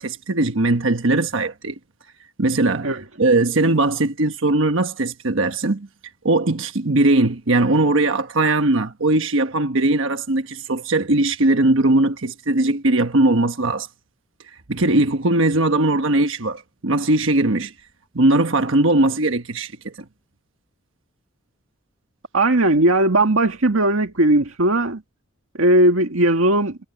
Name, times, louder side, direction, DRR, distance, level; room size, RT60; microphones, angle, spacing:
voice 1, 0.0-1.7 2.4-5.9 6.2-13.9 14.7-17.7 18.1-19.9, right 2 dB, 75° right, 1.2 m, -19 dB
voice 2, 22.3-25.0 25.5-26.8, right 1 dB, 90° right, 1.9 m, -17 dB
head